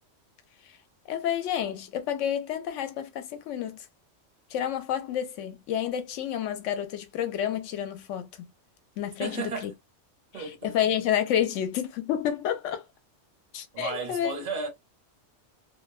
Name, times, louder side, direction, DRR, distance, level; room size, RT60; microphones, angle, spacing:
voice 1, 1.1-3.9 4.5-8.5 9.0-9.7 10.3-12.8 13.5-14.3, left 10 dB, 75° left, 0.9 m, -29 dB
voice 2, 9.2-9.7 10.3-10.8 13.7-14.7, right 4 dB, 35° right, 1.0 m, -34 dB
2.6 x 2.1 x 2.3 m
omnidirectional pair, 1.3 m